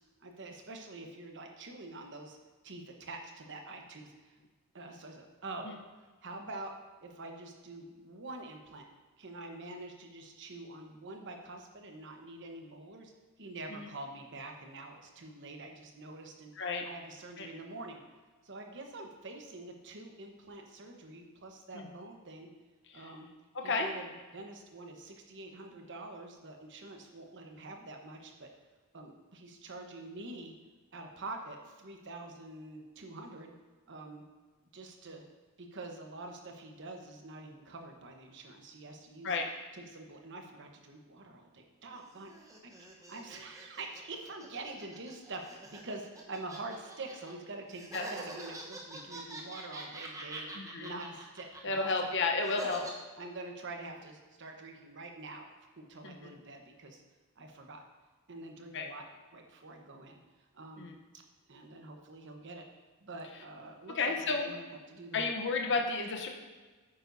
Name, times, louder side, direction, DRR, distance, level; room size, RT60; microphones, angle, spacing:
voice 1, 0.2-2.4 2.6-4.3 4.7-5.7 6.2-6.7 7.0-8.9 9.2-13.1 13.4-18.0 18.4-22.5 22.9-23.3 23.6-28.5 28.9-30.5 30.9-33.5 33.9-34.2 34.7-35.2 35.6-39.4 39.7-50.5 50.8-51.9 52.6-52.8 53.2-55.5 55.8-57.0 57.4-57.8 58.3-59.0 59.3-60.2 60.5-60.9 61.5-62.6 63.0-64.6 64.9-65.4, right 2 dB, 55° right, 3 dB, 1.1 m, -46 dB
voice 2, 23.5-23.9 39.2-39.5 47.9-48.0 50.5-50.9 51.6-52.8 56.0-56.2 58.7-58.9 60.8-60.9 63.9-64.5 65.1-66.3, left 3 dB, 55° left, 3 dB, 0.9 m, -32 dB
sound 1, 41.9-47.3 47.7-52.9, right 2 dB, 15° right, 1.0 m, -46 dB
9.3 x 8.9 x 2.7 m, 1.3 s
head